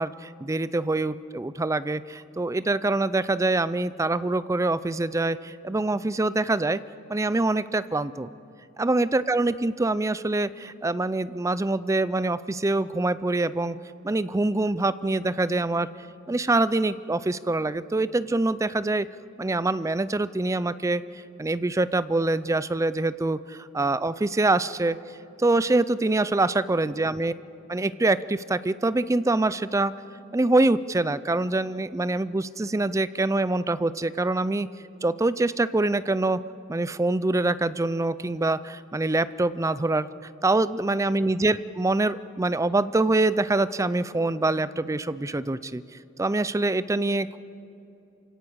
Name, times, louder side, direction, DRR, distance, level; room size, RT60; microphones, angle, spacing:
voice 1, 0.0-6.8 7.1-8.3 8.8-13.8 14.0-15.9 16.3-19.1 19.4-21.0 21.4-25.0 25.4-27.3 27.7-29.9 30.3-34.7 35.0-36.4 36.7-40.1 40.4-45.8 46.2-47.4, right 2 dB, 15° right, 16 dB, 0.4 m, -25 dB
27.5 x 17.0 x 6.4 m, 2.8 s
head